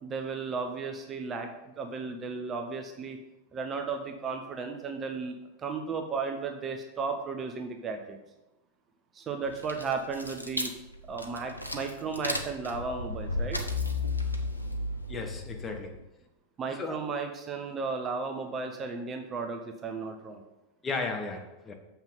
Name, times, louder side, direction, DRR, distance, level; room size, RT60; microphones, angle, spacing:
voice 1, 0.0-3.2 3.5-8.2 9.1-10.7 11.1-13.6 16.6-20.4, right 4 dB, 25° right, 4 dB, 0.9 m, -34 dB
keys in ignition and start car, 9.4-16.0, left 2 dB, 85° left, 0.8 m, -34 dB
voice 2, 15.1-16.0 16.7-17.0 20.8-21.7, left 3 dB, 20° left, 3 dB, 1.3 m, -35 dB
7.1 x 5.9 x 5.3 m, 0.95 s
figure-of-eight pair, 90°, 0 cm